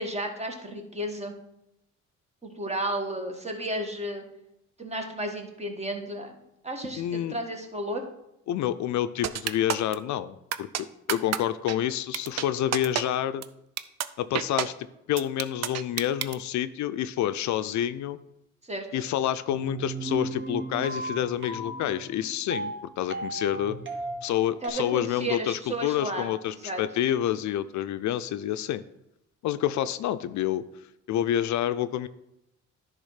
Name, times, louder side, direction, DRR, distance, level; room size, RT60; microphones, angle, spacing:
voice 1, 0.0-1.3 2.4-4.2 4.8-8.0 18.6-19.0 24.6-26.8, right 1 dB, 20° right, 3 dB, 1.5 m, -33 dB
voice 2, 7.0-7.4 8.5-13.4 14.2-14.7 15.1-18.2 18.9-23.8 24.2-28.8 29.4-30.6 31.1-32.1, left 11 dB, 70° left, 12 dB, 0.5 m, -28 dB
sound 1, 9.2-9.9 10.5-10.8 11.1-11.4 11.7-11.8 12.1-12.4 12.7-13.0 13.4-13.5 13.8-14.1 14.3-14.7 15.2-16.3, right 10 dB, 60° right, 0.5 m, -28 dB
sound 2, 19.5-24.7, right 2 dB, 40° right, 1.5 m, -35 dB
10.5 x 3.6 x 5.6 m, 0.84 s
cardioid pair, 90°, 30 cm